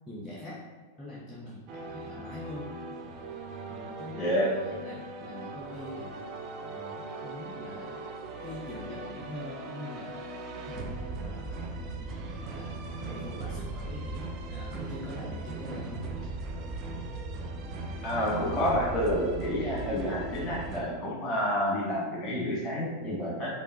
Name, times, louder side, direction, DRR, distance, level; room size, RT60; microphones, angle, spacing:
voice 1, 0.1-0.6 1.0-2.7 3.7-6.2 6.6-8.0 8.4-10.1 10.6-12.7 13.1-16.3, left 1 dB, 10° left, -7 dB, 0.7 m, -43 dB
sound 1, 1.7-20.8, right 3 dB, 35° right, 0.4 m, -38 dB
voice 2, 4.2-4.6 18.0-23.5, equal, 30° left, -3 dB, 1.3 m, -29 dB
4.5 x 2.8 x 2.7 m, 1.4 s
figure-of-eight pair, 90°, 0 cm